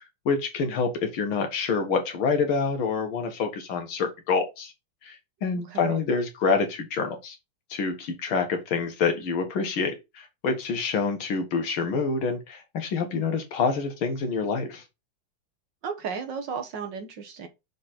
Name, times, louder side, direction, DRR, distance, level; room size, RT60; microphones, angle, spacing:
voice 1, 0.3-4.7 5.0-5.2 5.4-7.4 7.7-14.8, left 5 dB, 75° left, 2.1 m, -27 dB
voice 2, 5.5-6.0 15.8-17.5, right 6 dB, 60° right, 1.7 m, -34 dB
6.5 x 4.1 x 4.3 m
omnidirectional pair, 2.3 m